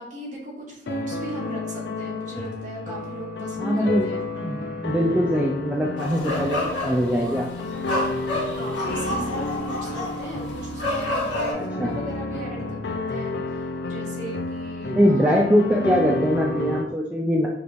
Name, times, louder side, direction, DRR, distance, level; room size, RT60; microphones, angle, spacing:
voice 1, 0.0-4.2 8.5-15.4, right 1 dB, 45° right, -3 dB, 1.1 m, -37 dB
sound 1, 0.9-16.8, left 2 dB, 65° left, 0.5 m, -31 dB
voice 2, 3.6-4.1 4.4-7.5 11.6-11.9 14.9-17.5, equal, 5° right, -3 dB, 0.3 m, -22 dB
sound 2, 6.0-11.5, left 1 dB, 90° left, 1.2 m, -29 dB
5.1 x 3.0 x 2.5 m, 0.86 s
head